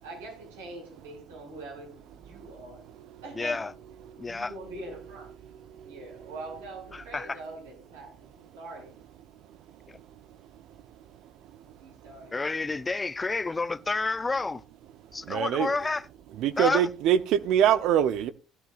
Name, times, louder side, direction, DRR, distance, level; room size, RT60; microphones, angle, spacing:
voice 1, 0.0-2.8 3.2-3.6 4.2-5.3 5.8-8.9 11.7-12.6, right 2 dB, 90° right, 6.7 m, -43 dB
voice 2, 3.4-3.7 4.2-4.5 6.9-7.4 9.9-10.0 12.3-14.6 15.1-16.1 16.6-16.9, left 3 dB, 20° left, 0.6 m, -30 dB
voice 3, 15.3-15.7 16.4-18.3, right 10 dB, 65° right, 0.8 m, -23 dB
16.5 x 11.0 x 2.5 m
hypercardioid pair, 70°, 0 cm